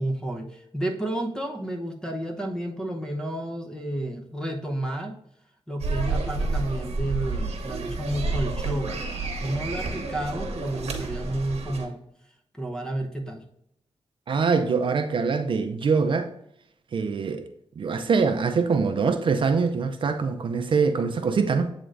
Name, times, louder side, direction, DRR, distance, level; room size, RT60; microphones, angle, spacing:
voice 1, 0.0-5.2 5.7-9.0 9.4-12.0 12.6-13.4, right 1 dB, 5° left, 0.7 m, -31 dB
sound 1, 5.8-11.9, right 3 dB, 75° right, 1.0 m, -30 dB
voice 2, 14.3-16.3 16.9-17.4 17.8-21.7, right 5 dB, 50° right, 0.5 m, -24 dB
7.8 x 3.8 x 3.2 m
wide cardioid pair, 170°, 11 cm